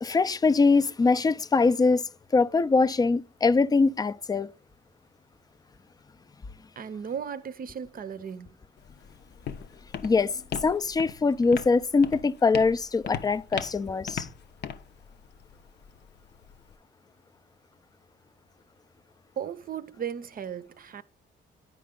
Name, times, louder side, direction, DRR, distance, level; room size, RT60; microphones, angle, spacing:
voice 1, 0.0-2.0 2.3-4.5 10.0-14.3, left 4 dB, 20° left, 0.4 m, -23 dB
voice 2, 6.8-8.6 19.4-21.0, right 8 dB, 45° right, 0.6 m, -36 dB
Walk footsteps, 8.8-16.7, left 8 dB, 60° left, 0.6 m, -39 dB
10.0 x 4.6 x 3.7 m
cardioid pair, 90°, 20 cm